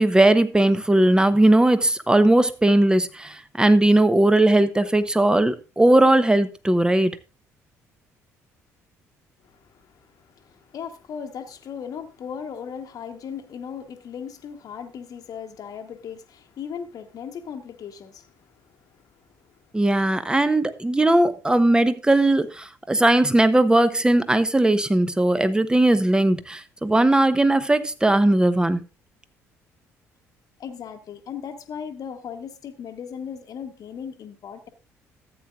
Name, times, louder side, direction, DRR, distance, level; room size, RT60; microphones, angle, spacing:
voice 1, 0.0-7.2 19.7-28.8, right 1 dB, 10° right, 1.0 m, -18 dB
voice 2, 9.4-19.6 30.6-34.7, left 7 dB, 55° left, 1.2 m, -37 dB
14.5 x 8.7 x 2.5 m
hypercardioid pair, 50°, 8 cm